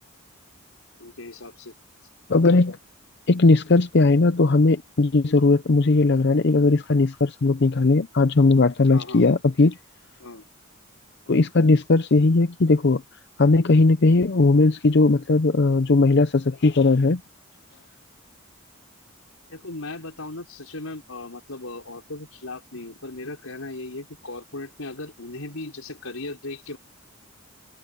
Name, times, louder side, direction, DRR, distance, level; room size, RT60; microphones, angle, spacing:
voice 1, 1.0-1.8 8.9-9.2 10.2-10.5 19.5-26.8, left 2 dB, 85° left, 4.5 m, -37 dB
voice 2, 2.3-2.8 3.3-9.8 11.3-13.0 13.4-17.2, left 3 dB, 55° left, 0.6 m, -18 dB
head